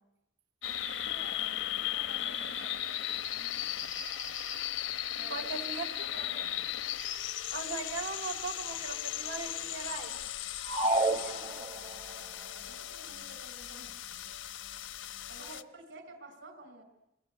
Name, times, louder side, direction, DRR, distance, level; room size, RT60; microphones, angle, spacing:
sound 1, 0.6-15.6, left 11 dB, 75° left, 0.9 m, -37 dB
voice 1, 0.9-4.3 5.2-5.7 6.0-6.7 10.8-14.3 15.3-16.8, right 2 dB, 60° right, 6 dB, 4.5 m, -52 dB
voice 2, 5.3-5.8 7.5-10.1 15.4-15.6, right 4 dB, 85° right, 2 dB, 5.5 m, -39 dB
sound 2, 10.6-12.1, right 2 dB, 30° right, 1.0 m, -30 dB
28.5 x 21.0 x 9.1 m, 0.89 s
head